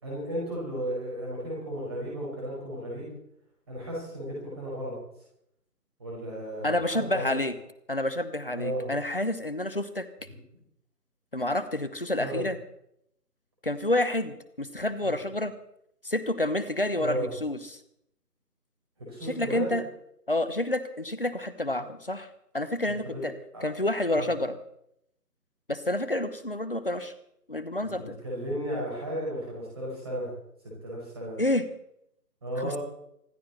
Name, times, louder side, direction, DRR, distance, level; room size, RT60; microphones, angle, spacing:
voice 1, 0.0-3.1 3.7-5.0 6.0-7.3 8.5-8.9 12.1-12.4 15.0-15.1 16.9-17.3 19.0-19.8 22.8-23.2 23.5-23.7 24.1-24.3 27.9-30.3 30.8-31.4 32.4-32.8, equal, 15° right, -5 dB, 4.9 m, -34 dB
voice 2, 6.6-7.5 7.9-10.1 11.3-12.6 13.6-15.5 16.0-17.8 19.2-19.8 20.3-22.3 22.5-23.3 23.6-24.6 25.7-27.1 27.5-28.2 31.4-31.7 32.6-32.8, left 1 dB, 35° left, 12 dB, 1.0 m, -29 dB
26.5 x 10.0 x 4.2 m, 0.76 s
figure-of-eight pair, 160°, 48 cm